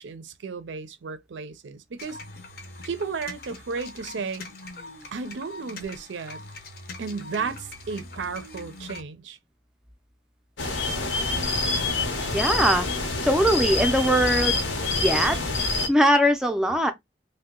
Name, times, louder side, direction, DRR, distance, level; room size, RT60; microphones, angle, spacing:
voice 1, 0.0-2.2 2.8-4.5 5.1-6.4 7.0-9.4, right 5 dB, 80° right, 0.5 m, -34 dB
sound 1, 2.0-9.0, left 2 dB, 55° left, 0.6 m, -42 dB
sound 2, 10.6-15.9, left 2 dB, 90° left, 0.8 m, -26 dB
voice 2, 12.3-12.9 13.2-15.4 15.9-16.9, equal, 5° right, 0.4 m, -21 dB
2.7 x 2.1 x 3.5 m
head